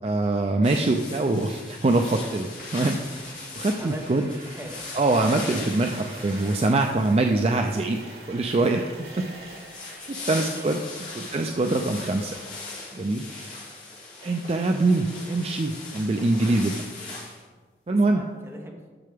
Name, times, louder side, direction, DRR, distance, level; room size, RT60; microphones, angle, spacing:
voice 1, 0.0-4.3 4.9-8.0 8.3-9.3 10.1-12.4 12.9-13.2 14.2-16.8 17.9-18.2, right 2 dB, 35° right, 4 dB, 0.4 m, -24 dB
sound 1, 0.6-7.4 9.4-17.4, left 3 dB, 45° left, 2.1 m, -39 dB
sound 2, 2.6-12.3, right 2 dB, 70° right, 2.6 m, -46 dB
voice 2, 3.8-4.9 10.1-10.8 11.3-11.4 18.1-18.8, equal, 15° right, 1 dB, 1.0 m, -42 dB
9.7 x 6.6 x 3.5 m, 1.3 s
head